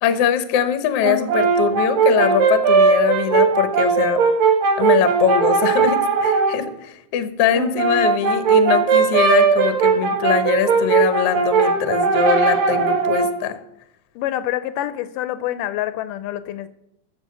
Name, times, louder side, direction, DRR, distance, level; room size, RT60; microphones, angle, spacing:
voice 1, 0.0-4.2 4.8-13.6, left 9 dB, 65° left, 10 dB, 1.5 m, -22 dB
Brass instrument, 1.0-6.6 7.5-13.4, right 5 dB, 85° right, 3.5 m, -18 dB
voice 2, 14.2-16.7, left 13 dB, 80° left, 13 dB, 2.2 m, -26 dB
13.5 x 7.8 x 6.7 m, 0.79 s
omnidirectional pair, 3.8 m